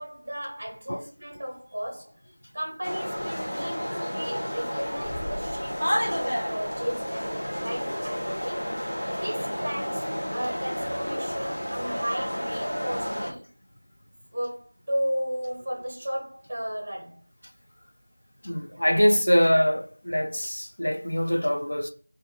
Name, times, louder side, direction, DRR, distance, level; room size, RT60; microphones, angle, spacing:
voice 1, 0.0-2.1 2.5-13.5 14.3-17.2 18.7-18.8, equal, 15° right, 0.9 m, -35 dB
sound 1, 2.8-13.3, equal, 30° left, 1.2 m, -31 dB
voice 2, 18.4-21.9, equal, 50° left, 0.5 m, -23 dB
3.2 x 2.6 x 4.0 m
figure-of-eight pair, 175°, 0 cm